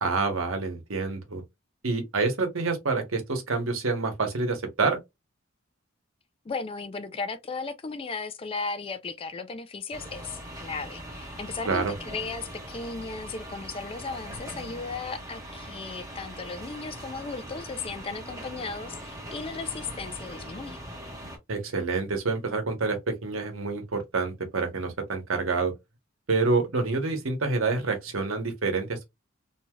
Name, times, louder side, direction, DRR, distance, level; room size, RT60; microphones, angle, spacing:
voice 1, 0.0-1.4 1.8-5.0 11.6-11.9 21.5-25.7 26.3-29.0, right 3 dB, 80° right, 1.0 m, -27 dB
voice 2, 6.5-20.8, left 4 dB, 25° left, 0.3 m, -36 dB
sound 1, 9.9-21.4, equal, 15° right, 0.9 m, -41 dB
2.7 x 2.3 x 2.9 m
head